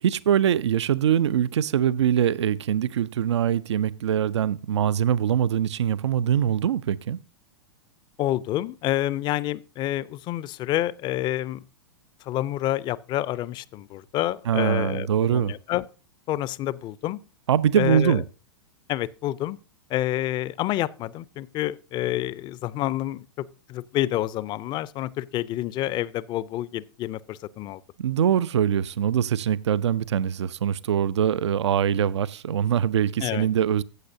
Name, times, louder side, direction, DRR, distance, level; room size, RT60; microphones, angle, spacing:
voice 1, 0.0-7.2 14.5-15.5 17.5-18.2 28.0-33.8, right 9 dB, 80° right, 0.4 m, -23 dB
voice 2, 8.2-11.6 12.3-15.9 16.3-17.2 17.8-18.2 18.9-19.6 19.9-27.8 33.2-33.5, left 14 dB, 30° left, 0.4 m, -28 dB
14.5 x 7.8 x 2.7 m
hypercardioid pair, 110°, 14 cm